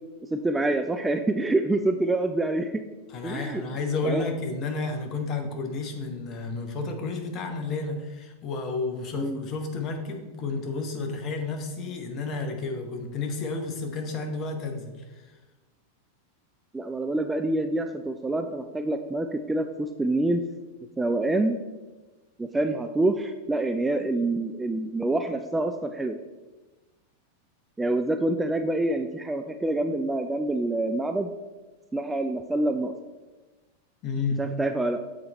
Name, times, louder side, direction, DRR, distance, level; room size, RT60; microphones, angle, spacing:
voice 1, 0.3-2.7 3.2-3.6 4.0-4.3 9.1-9.4 16.7-20.4 21.0-21.6 22.4-26.2 27.8-31.3 31.9-32.9 34.4-35.0, right 2 dB, 10° right, 6 dB, 0.3 m, -26 dB
voice 2, 3.1-15.3 34.0-34.5, left 3 dB, 35° left, 4 dB, 1.0 m, -31 dB
7.4 x 4.0 x 4.2 m, 1.2 s
figure-of-eight pair, 90°, 0 cm